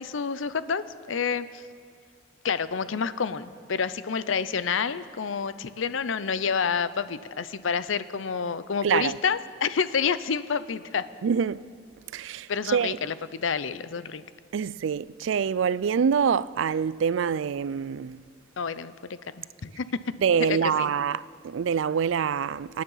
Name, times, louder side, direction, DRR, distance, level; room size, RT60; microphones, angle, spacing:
voice 1, 0.0-1.6 2.4-11.1 12.5-14.2 18.6-19.8 20.4-20.7, left 6 dB, 85° left, 0.6 m, -29 dB
voice 2, 8.8-9.2 11.2-11.6 12.1-13.0 14.5-18.2 20.2-22.8, right 7 dB, 80° right, 0.4 m, -25 dB
25.0 x 9.6 x 5.6 m
head